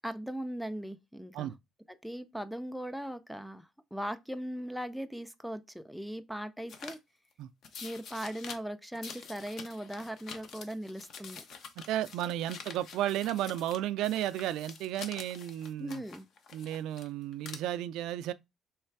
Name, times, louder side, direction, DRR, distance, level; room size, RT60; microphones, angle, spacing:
voice 1, 0.0-1.5 1.9-7.0 7.8-11.4 15.8-16.3, equal, ahead, 0.4 m, -39 dB
sound 1, 6.7-7.0 7.6-8.6 8.9-13.8 14.0-17.1 17.3-17.6, left 5 dB, 50° left, 0.7 m, -47 dB
voice 2, 11.8-16.0 16.5-18.3, right 12 dB, 85° right, 0.3 m, -33 dB
3.4 x 3.2 x 4.5 m
cardioid pair, 160°, 0 cm